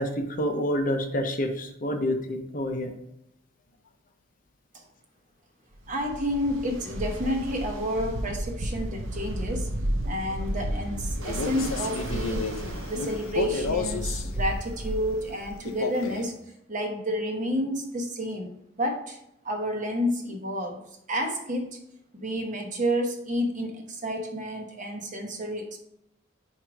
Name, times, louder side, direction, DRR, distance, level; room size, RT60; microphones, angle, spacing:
voice 1, 0.0-2.9, equal, 40° left, 5 dB, 0.7 m, -28 dB
Ocean, 5.8-15.7, right 1 dB, 70° right, 0.7 m, -33 dB
voice 2, 5.9-9.7 10.0-12.5 12.9-16.3 16.7-18.5 18.8-19.2 19.4-20.8 21.1-21.8 22.1-25.8, equal, 35° right, 3 dB, 0.9 m, -30 dB
Male speech man speaking, 11.2-14.3 15.6-16.3, left 4 dB, 80° left, 0.6 m, -32 dB
4.8 x 4.5 x 5.0 m, 0.78 s
head